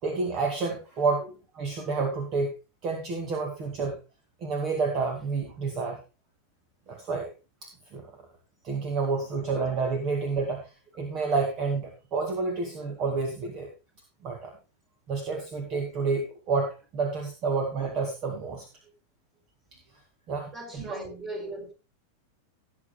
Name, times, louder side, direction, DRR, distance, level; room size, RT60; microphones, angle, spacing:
voice 1, 0.0-1.2 1.6-2.5 2.8-4.0 4.4-6.0 6.9-7.3 7.6-8.0 8.6-10.6 10.9-13.7 14.2-14.5 15.1-18.7 20.3-21.0, right 4 dB, 35° right, 2.4 m, -29 dB
voice 2, 20.5-21.7, right 1 dB, 20° right, 4.5 m, -39 dB
18.5 x 8.2 x 2.3 m
figure-of-eight pair, 90°, 0 cm